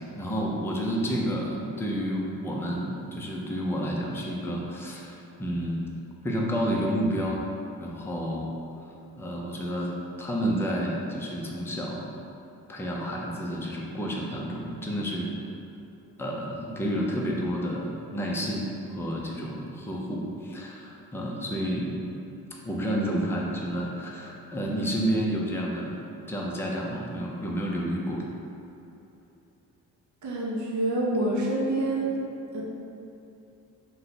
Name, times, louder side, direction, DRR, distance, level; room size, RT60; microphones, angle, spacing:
voice 1, 0.2-5.9 6.2-7.4 7.8-8.5 9.2-9.9 10.2-12.2 12.7-15.3 16.2-22.1 22.6-26.0 26.3-28.2, equal, 5° left, -3 dB, 0.5 m, -30 dB
voice 2, 30.2-32.2 32.5-32.6, right 2 dB, 50° right, -3 dB, 0.7 m, -27 dB
2.6 x 2.3 x 4.0 m, 2.8 s
supercardioid pair, 55°, 39 cm